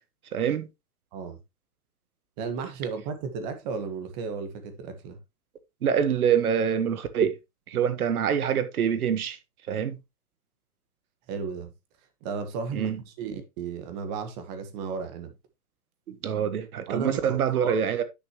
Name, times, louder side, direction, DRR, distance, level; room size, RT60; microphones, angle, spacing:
voice 1, 0.3-0.7 5.8-7.4 7.7-9.4 9.7-10.0 12.7-13.0 16.1-18.0, right 8 dB, 70° right, 1.5 m, -25 dB
voice 2, 2.4-5.2 11.3-11.7 12.2-12.9 13.2-15.3 16.9-17.8, right 5 dB, 30° right, 1.6 m, -34 dB
10.0 x 5.9 x 3.0 m
hypercardioid pair, 150°, 45 cm